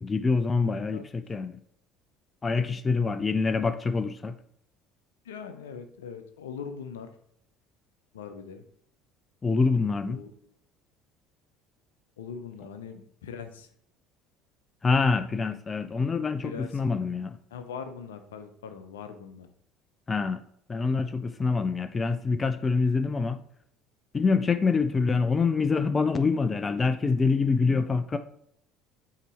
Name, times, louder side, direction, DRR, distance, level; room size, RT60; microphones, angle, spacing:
voice 1, 0.0-1.6 2.4-4.4 9.4-10.2 14.8-17.4 20.1-20.4 20.7-23.4 24.1-28.2, left 4 dB, 25° left, 10 dB, 0.4 m, -25 dB
voice 2, 0.6-1.0 5.2-7.1 8.1-8.6 10.0-10.3 12.2-13.7 16.4-16.8 17.5-19.5, left 6 dB, 70° left, 8 dB, 0.6 m, -41 dB
8.1 x 2.9 x 4.1 m, 0.70 s
figure-of-eight pair, 60°, 0 cm